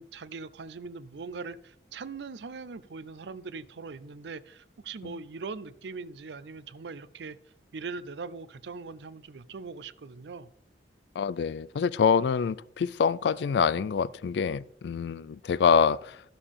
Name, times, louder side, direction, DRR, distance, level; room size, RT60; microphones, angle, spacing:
voice 1, 0.0-7.4 7.7-10.5, right 4 dB, 80° right, 0.5 m, -41 dB
voice 2, 11.2-16.2, left 6 dB, 75° left, 0.3 m, -26 dB
12.5 x 6.8 x 3.6 m
head